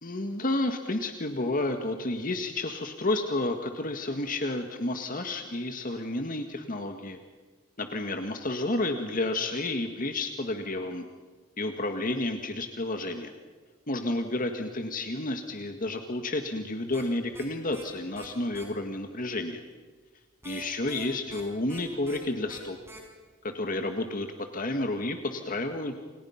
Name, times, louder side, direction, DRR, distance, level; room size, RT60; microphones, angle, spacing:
voice 1, 0.0-7.2 7.8-11.0 11.6-13.3 13.9-19.6 20.4-22.8 23.4-24.3 24.5-25.9, left 2 dB, 45° left, 6 dB, 1.7 m, -31 dB
sound 1, 16.9-17.0 17.3-17.4 17.7-17.8 18.1-18.3 18.5-18.6 20.4-21.4 21.7-21.8 22.0-22.2 22.5-22.6 22.9-23.0, right 3 dB, 15° right, 6.6 m, -45 dB
29.0 x 28.0 x 5.8 m, 1.4 s
head